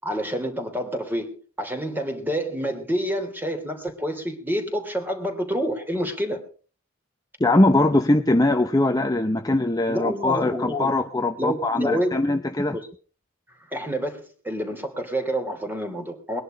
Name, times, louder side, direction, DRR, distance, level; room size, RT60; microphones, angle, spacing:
voice 1, 0.0-6.4 9.9-10.9 11.4-12.3 12.7-12.9 13.7-16.4, equal, 10° right, 5 dB, 3.0 m, -28 dB
voice 2, 7.4-12.8, left 2 dB, 15° left, 6 dB, 0.8 m, -21 dB
20.5 x 11.0 x 5.2 m, 0.41 s
head